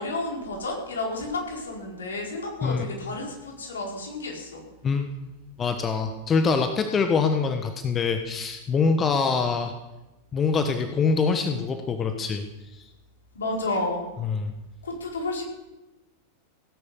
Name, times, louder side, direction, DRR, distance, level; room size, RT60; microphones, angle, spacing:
voice 1, 0.0-4.6 13.3-14.0 14.8-15.4, left 2 dB, 70° left, -1 dB, 4.6 m, -31 dB
voice 2, 5.6-9.7 10.3-12.4 12.7-12.9 14.2-14.5, left 5 dB, 25° left, 6 dB, 1.1 m, -24 dB
17.0 x 10.0 x 6.9 m, 1.0 s
figure-of-eight pair, 90°, 0 cm